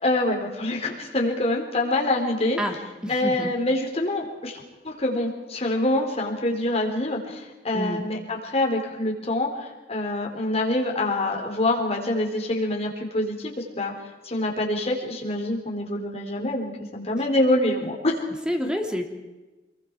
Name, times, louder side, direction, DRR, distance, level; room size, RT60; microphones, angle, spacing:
voice 1, 0.0-2.6 3.1-9.5 9.9-13.9 14.3-18.2, left 1 dB, 35° left, -1 dB, 4.0 m, -25 dB
voice 2, 2.6-3.5 7.7-8.1 18.5-19.0, equal, 5° right, 3 dB, 2.4 m, -28 dB
25.5 x 22.5 x 4.8 m, 1.1 s
head